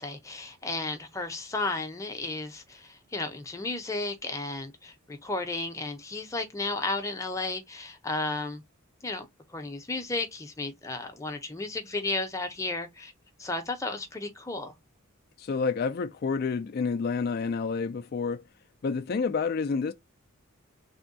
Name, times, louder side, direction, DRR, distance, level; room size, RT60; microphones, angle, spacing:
voice 1, 0.0-8.6 9.0-9.3 9.5-13.1 13.4-14.7, left 2 dB, 15° left, 0.7 m, -33 dB
voice 2, 15.4-18.4 18.8-19.9, left 5 dB, 45° left, 0.3 m, -29 dB
3.4 x 2.2 x 2.6 m
head